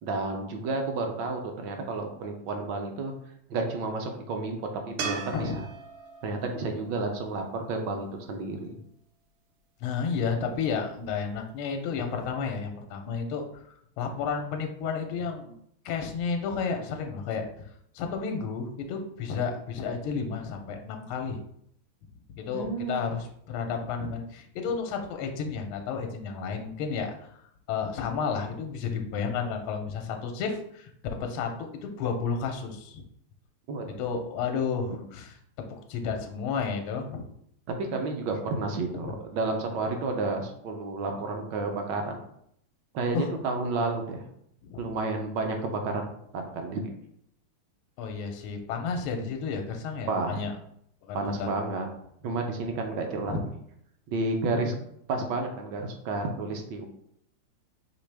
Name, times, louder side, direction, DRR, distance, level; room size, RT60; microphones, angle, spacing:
voice 1, 0.0-3.1 3.5-4.7 5.0-5.6 6.2-8.8 22.5-23.0 33.7-34.0 34.9-35.0 37.8-42.2 42.9-44.2 44.8-46.1 46.3-46.8 50.1-50.4 51.1-51.9 52.2-53.5 54.1-54.7 55.1-56.9, right 3 dB, 70° right, 4 dB, 1.2 m, -31 dB
sound 1, 5.0-8.2 11.5-11.6, right 6 dB, 85° right, 1.6 m, -39 dB
voice 2, 9.8-15.5 15.8-17.5 17.9-21.4 22.3-27.3 27.7-30.9 31.2-33.0 34.0-35.3 35.7-37.2 39.0-39.2 43.1-43.3 44.7-44.8 48.0-50.5 51.0-51.6 53.2-53.4, left 5 dB, 80° left, 4 dB, 1.4 m, -32 dB
5.1 x 3.1 x 3.3 m, 0.71 s
omnidirectional pair, 2.4 m